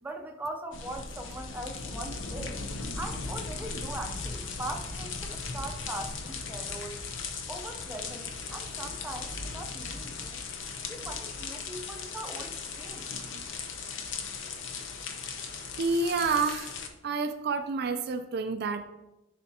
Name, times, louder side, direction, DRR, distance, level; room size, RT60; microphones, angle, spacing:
voice 1, 0.0-2.6 3.0-7.0 7.5-10.4 10.9-13.1, right 1 dB, 10° right, 2 dB, 0.6 m, -40 dB
sound 1, 0.7-16.9, left 4 dB, 75° left, 0.7 m, -38 dB
voice 2, 15.8-16.8 17.0-18.8, right 4 dB, 55° right, 8 dB, 0.4 m, -29 dB
10.5 x 4.3 x 2.8 m, 0.98 s
head